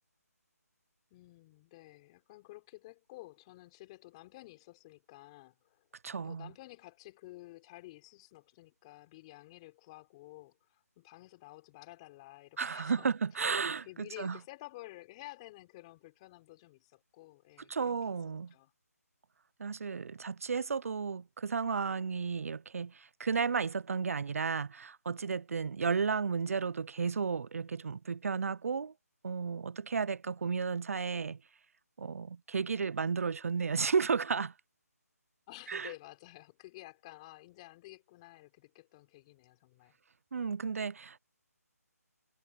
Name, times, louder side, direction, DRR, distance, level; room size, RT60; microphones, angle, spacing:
voice 1, 1.1-5.9 6.2-13.1 13.8-18.1 18.5-18.7 25.9-26.1 35.5-40.0, left 19 dB, 20° left, 3.5 m, -52 dB
voice 2, 6.0-6.5 12.6-13.9 14.2-14.4 17.7-18.5 19.6-28.9 29.2-31.4 32.0-34.5 35.7-35.9 40.3-41.2, right 5 dB, 60° right, 0.6 m, -33 dB
figure-of-eight pair, 160°, 9 cm